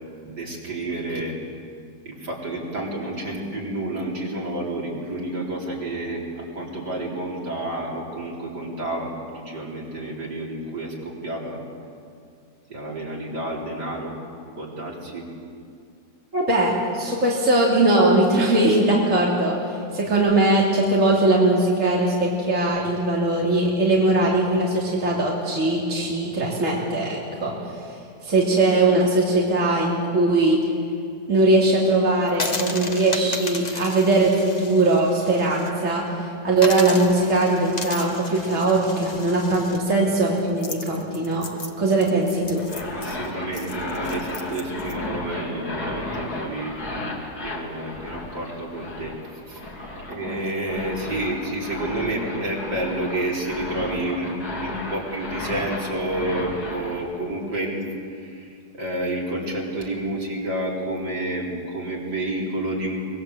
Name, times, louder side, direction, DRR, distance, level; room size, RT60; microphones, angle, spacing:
voice 1, 0.3-1.4 2.0-11.6 12.7-14.2 14.6-15.3 42.9-47.1 47.4-49.6 50.1-58.5 58.7-63.0, right 1 dB, 80° right, -3 dB, 4.6 m, -30 dB
voice 2, 16.3-19.6 19.9-27.5 28.2-30.6 31.3-41.5 41.8-42.7, right 2 dB, 50° right, -4 dB, 3.2 m, -20 dB
sound 1, 32.3-35.7 36.0-36.1 36.6-44.9, left 3 dB, 25° left, 1.4 m, -34 dB
sound 2, 42.6-57.0, left 2 dB, 65° left, 3.3 m, -34 dB
24.0 x 20.5 x 8.0 m, 2.4 s
omnidirectional pair, 1.8 m